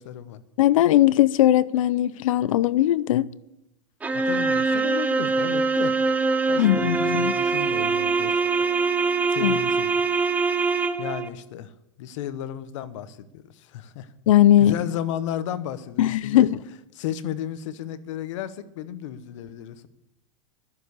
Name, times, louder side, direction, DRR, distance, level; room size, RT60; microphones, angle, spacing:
voice 1, 0.0-0.4 4.1-6.0 6.5-8.6 9.3-9.9 11.0-14.1 14.6-16.5 16.9-19.9, left 10 dB, 65° left, 1.0 m, -34 dB
voice 2, 0.6-3.3 6.6-7.4 9.4-9.6 14.3-14.7 16.0-16.5, left 13 dB, 85° left, 0.6 m, -19 dB
sound 1, 4.0-11.3, right 4 dB, 10° right, 0.5 m, -23 dB
12.5 x 6.9 x 8.2 m
supercardioid pair, 145°, 17 cm